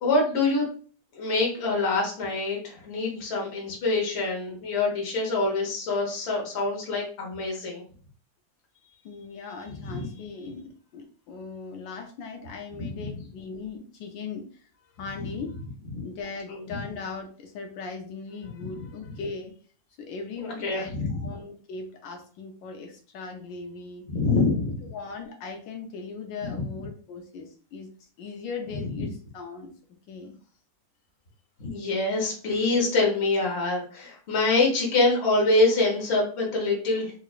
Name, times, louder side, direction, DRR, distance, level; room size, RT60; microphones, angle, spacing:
voice 1, 0.0-0.6 1.2-7.8 9.8-10.0 15.9-16.0 16.5-16.6 18.7-18.8 20.4-21.3 24.1-24.7 26.4-26.5 29.0-29.1 31.6-37.1, left 3 dB, 40° left, -1 dB, 1.1 m, -25 dB
voice 2, 8.8-14.6 14.9-15.7 16.0-19.5 20.0-24.1 24.9-29.7 30.1-30.3, left 4 dB, 80° left, 3 dB, 1.3 m, -39 dB
3.6 x 3.1 x 2.4 m, 0.42 s
omnidirectional pair, 2.1 m